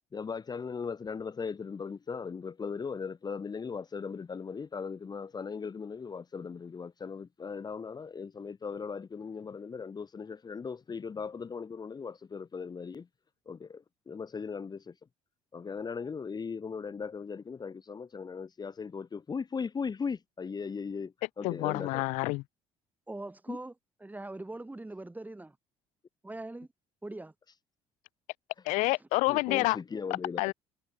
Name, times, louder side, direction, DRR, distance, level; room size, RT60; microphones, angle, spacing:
voice 1, 0.1-13.1 13.5-14.9 15.5-22.0 23.5-23.6 29.3-30.4, left 5 dB, 35° left, 2.2 m, -38 dB
voice 2, 21.4-22.4 28.6-29.8 30.4-30.5, left 23 dB, 80° left, 1.1 m, -28 dB
voice 3, 23.1-23.7 24.0-25.6 26.2-26.7 27.0-27.3, right 2 dB, 15° right, 6.8 m, -41 dB
supercardioid pair, 75°, 12 cm